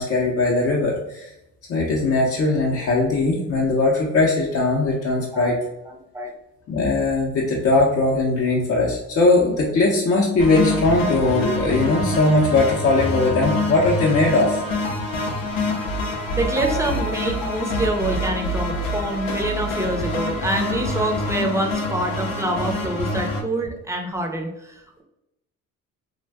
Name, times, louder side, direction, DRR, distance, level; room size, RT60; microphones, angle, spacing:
voice 1, 0.0-1.3 1.7-5.6 6.7-14.6, left 2 dB, 45° left, -3 dB, 0.6 m, -20 dB
voice 2, 5.9-6.3 16.3-25.0, right 1 dB, 10° right, 2 dB, 0.5 m, -26 dB
sound 1, 10.4-23.4, left 2 dB, 80° left, 0.7 m, -26 dB
2.5 x 2.2 x 3.3 m, 0.87 s
cardioid pair, 80°, 34 cm